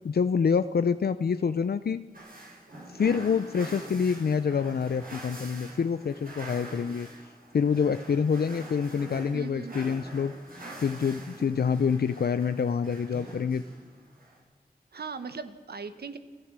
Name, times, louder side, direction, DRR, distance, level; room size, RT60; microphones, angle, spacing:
voice 1, 0.0-2.0 2.9-7.1 7.5-10.3 10.8-13.6, left 6 dB, 80° left, 11 dB, 0.6 m, -26 dB
sound 1, 2.1-14.4, right 1 dB, 65° right, 6.9 m, -45 dB
voice 2, 9.3-9.8 14.9-16.2, right 5 dB, 85° right, 10 dB, 1.3 m, -38 dB
29.5 x 12.0 x 7.5 m, 1.4 s
cardioid pair, 40°, 16 cm